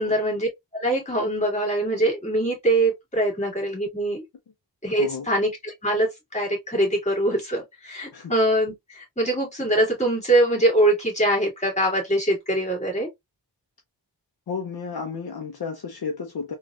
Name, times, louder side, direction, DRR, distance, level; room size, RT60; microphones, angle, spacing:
voice 1, 0.0-4.2 4.8-13.1, right 1 dB, 15° left, 2.0 m, -23 dB
voice 2, 14.5-16.5, left 5 dB, 55° left, 0.7 m, -32 dB
3.8 x 2.4 x 2.4 m
wide cardioid pair, 125°, 44 cm